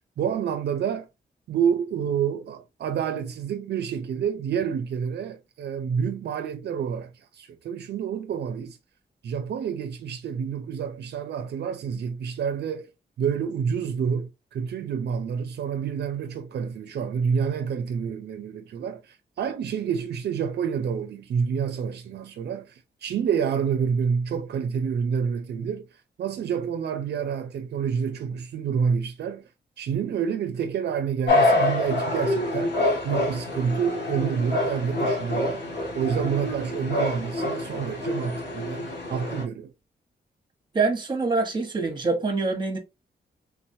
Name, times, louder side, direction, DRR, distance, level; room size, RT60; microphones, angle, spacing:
voice 1, 0.2-1.1 1.5-8.8 9.2-12.9 13.2-25.9 26.2-29.5 29.8-32.7 33.0-35.6 35.9-39.7, right 7 dB, 70° right, 0.4 m, -28 dB
sound 1, 31.3-39.4, left 2 dB, 85° left, 1.4 m, -26 dB
voice 2, 40.7-42.8, right 3 dB, 25° right, 0.9 m, -25 dB
3.5 x 3.0 x 2.6 m
wide cardioid pair, 140°, 18 cm